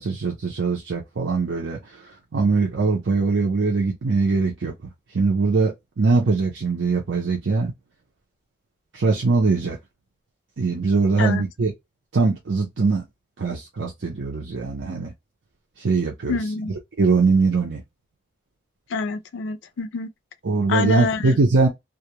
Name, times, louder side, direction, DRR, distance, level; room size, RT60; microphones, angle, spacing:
voice 1, 0.0-1.8 2.3-4.7 5.1-7.7 8.9-9.8 10.6-11.7 12.1-13.1 13.4-15.1 15.8-16.4 17.0-17.8 20.4-21.7, right 4 dB, 80° right, 0.6 m, -21 dB
voice 2, 16.3-16.7 18.9-20.1 20.7-21.4, left 4 dB, 80° left, 0.4 m, -26 dB
2.4 x 2.1 x 2.8 m
head